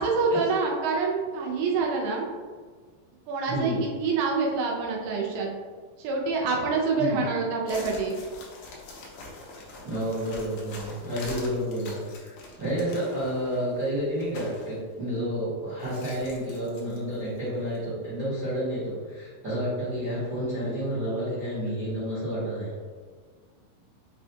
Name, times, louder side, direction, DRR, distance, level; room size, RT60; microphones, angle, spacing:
voice 1, 0.0-2.3 3.3-5.5 6.0-8.2, right 4 dB, 85° right, -1 dB, 2.6 m, -26 dB
voice 2, 3.5-3.8 7.0-7.2 9.8-22.8, equal, 65° right, -12 dB, 1.0 m, -30 dB
sound 1, 7.7-14.8 15.8-17.4 17.7-17.8, left 3 dB, 80° left, 1.9 m, -44 dB
6.1 x 2.2 x 2.7 m, 1.5 s
omnidirectional pair, 4.5 m